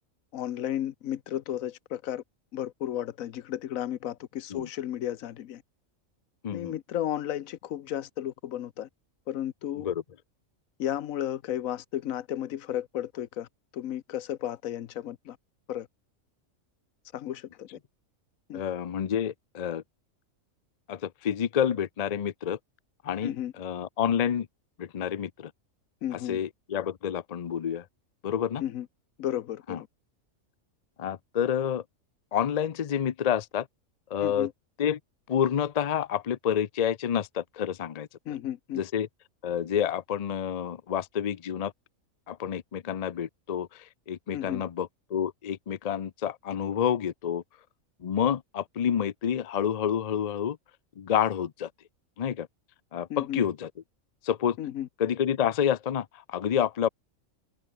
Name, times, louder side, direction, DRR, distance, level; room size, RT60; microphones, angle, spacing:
voice 1, 0.3-2.2 2.5-5.6 6.5-8.9 9.3-9.9 10.8-13.5 13.7-15.4 15.7-15.9 17.1-17.8 18.5-18.6 23.2-23.5 26.0-26.4 28.6-28.9 29.2-29.9 34.2-34.5 38.3-38.8 44.3-44.6 53.1-53.4 54.6-54.9, left 11 dB, 80° left, 1.2 m, -33 dB
voice 2, 6.4-6.8 9.8-10.0 18.5-19.8 20.9-22.6 23.0-24.5 24.8-25.5 26.1-27.8 28.2-28.6 29.7-29.8 31.0-31.8 32.3-33.7 34.1-34.5 34.8-35.0 35.3-38.1 38.7-39.1 39.4-41.7 42.3-43.7 44.1-47.4 48.0-50.6 51.0-51.7 52.2-52.5 52.9-53.7 54.2-54.6 55.0-56.9, left 9 dB, 50° left, 0.5 m, -28 dB
open air
omnidirectional pair, 1.4 m